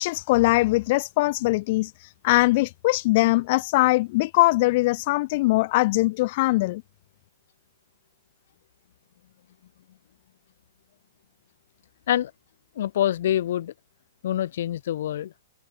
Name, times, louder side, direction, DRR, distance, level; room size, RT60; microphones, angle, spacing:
voice 1, 0.0-1.9 2.2-6.8, left 21 dB, 50° left, 1.2 m, -21 dB
voice 2, 12.7-13.7 14.2-15.3, left 11 dB, 70° left, 1.3 m, -25 dB
hypercardioid pair, 135°, 0 cm